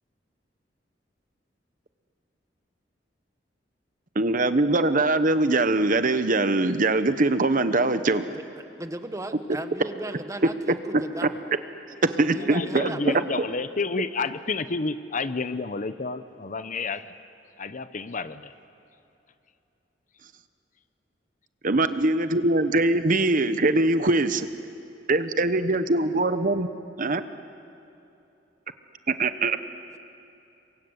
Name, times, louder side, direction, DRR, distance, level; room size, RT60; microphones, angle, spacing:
voice 1, 4.1-8.2 11.2-11.3 12.0-12.9 21.6-24.5 25.1-26.7 27.0-27.2 29.2-29.6, right 2 dB, 50° right, 11 dB, 1.0 m, -22 dB
voice 2, 8.8-11.4 12.3-13.3, right 1 dB, 20° right, 8 dB, 1.3 m, -36 dB
voice 3, 12.5-17.1 17.6-18.5, left 4 dB, 45° left, 12 dB, 0.8 m, -30 dB
28.0 x 23.0 x 8.2 m, 2.8 s
head